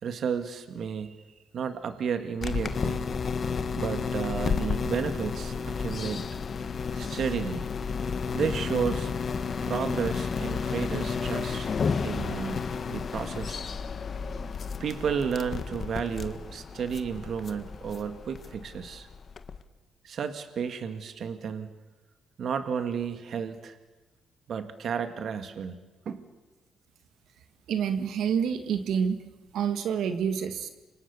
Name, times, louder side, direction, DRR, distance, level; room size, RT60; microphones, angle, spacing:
voice 1, 0.0-1.2 1.5-3.1 3.8-6.3 6.9-7.6 8.3-9.1 9.6-11.7 12.0-13.6 14.8-19.1 20.0-21.7 22.4-23.7 24.5-25.8 26.1-26.2, right 7 dB, 60° right, 8 dB, 1.9 m, -32 dB
sound 1, 2.4-19.6, left 5 dB, 45° left, 1.5 m, -32 dB
voice 2, 27.7-29.2 29.5-30.7, right 7 dB, 75° right, 8 dB, 1.9 m, -27 dB
29.5 x 25.5 x 7.1 m, 1.1 s
cardioid pair, 90°, 0 cm